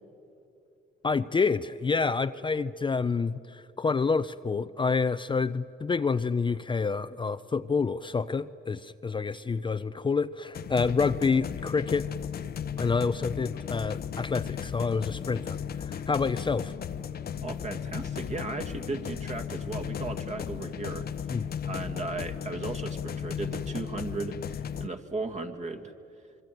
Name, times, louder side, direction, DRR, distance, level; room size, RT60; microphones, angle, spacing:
voice 1, 1.0-12.1 12.8-16.7 21.3-21.5, left 4 dB, 25° left, 11 dB, 0.5 m, -28 dB
sound 1, 10.5-24.9, left 8 dB, 50° left, 0.9 m, -35 dB
voice 2, 17.4-21.1 21.6-24.4 24.8-25.9, right 3 dB, 35° right, 6 dB, 2.0 m, -36 dB
25.5 x 23.0 x 9.2 m, 2.7 s
cardioid pair, 90°, 20 cm